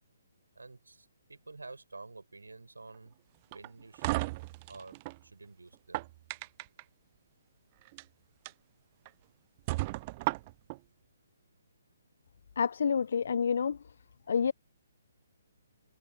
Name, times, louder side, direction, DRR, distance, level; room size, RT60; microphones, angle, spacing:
voice 1, 0.5-3.1 3.5-4.2 4.7-6.1, right 3 dB, 75° right, 6.7 m, -50 dB
sound 1, 3.5-5.2 5.7-6.8 7.8-8.0 8.5-8.6 9.1-9.2 9.7-10.8, right 22 dB, 30° right, 0.6 m, -34 dB
voice 2, 12.6-13.8 14.3-14.5, left 6 dB, 55° left, 0.6 m, -28 dB
figure-of-eight pair, 135°, 0 cm